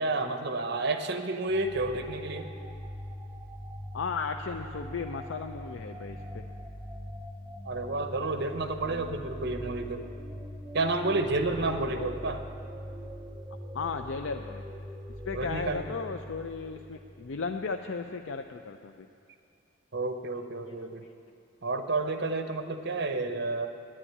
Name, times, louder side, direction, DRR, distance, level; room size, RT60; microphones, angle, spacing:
voice 1, 0.0-2.5 7.6-10.0 10.7-12.4 15.3-15.8 19.9-21.0 21.6-23.7, right 2 dB, 60° right, 7 dB, 0.9 m, -30 dB
sound 1, 1.5-17.8, equal, 5° right, 0.6 m, -42 dB
voice 2, 3.9-6.4 11.6-12.1 13.7-14.6 15.2-19.1 20.7-21.1, left 5 dB, 70° left, 6 dB, 0.5 m, -36 dB
9.9 x 9.9 x 9.7 m, 2.5 s
head